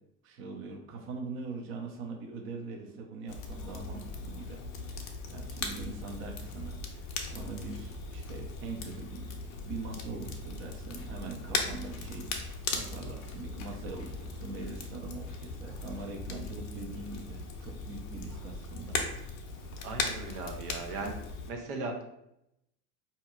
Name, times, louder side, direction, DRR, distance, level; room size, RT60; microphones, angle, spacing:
voice 1, 0.2-9.3 9.6-19.0, right 3 dB, 30° right, 1 dB, 0.6 m, -42 dB
Crackle, 3.3-21.5, left 4 dB, 35° left, 0.7 m, -38 dB
voice 2, 19.8-21.2 21.5-22.0, right 3 dB, 70° right, 3 dB, 0.9 m, -37 dB
4.3 x 2.8 x 2.4 m, 0.81 s
hypercardioid pair, 85°, 48 cm